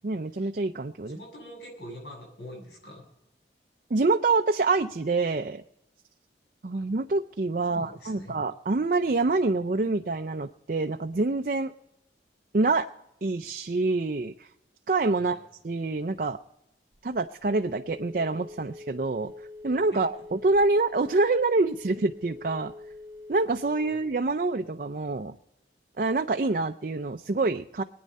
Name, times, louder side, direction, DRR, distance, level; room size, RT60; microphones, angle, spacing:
voice 1, 0.0-1.2 3.9-5.6 6.6-11.7 12.5-12.9 13.2-14.5 14.9-15.4 15.6-16.4 17.0-19.3 19.6-22.7 23.3-25.3 26.0-27.8, right 3 dB, 50° right, 6 dB, 0.5 m, -26 dB
voice 2, 1.1-3.1 7.7-8.4 15.2-15.4 19.9-20.0 23.9-24.0, equal, 65° left, -1 dB, 7.6 m, -44 dB
Telephone, 16.9-24.3, left 2 dB, 15° right, 0.8 m, -45 dB
22.0 x 9.5 x 5.4 m, 0.84 s
head